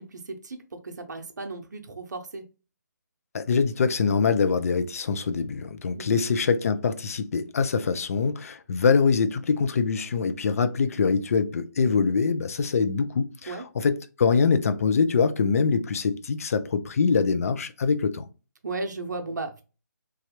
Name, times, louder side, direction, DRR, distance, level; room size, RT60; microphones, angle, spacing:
voice 1, 0.0-2.4 6.0-6.2 13.5-13.6 18.6-19.6, right 3 dB, 65° right, 0.7 m, -35 dB
voice 2, 3.3-18.3, left 5 dB, 50° left, 0.4 m, -24 dB
3.3 x 2.3 x 2.9 m
figure-of-eight pair, 150°, 10 cm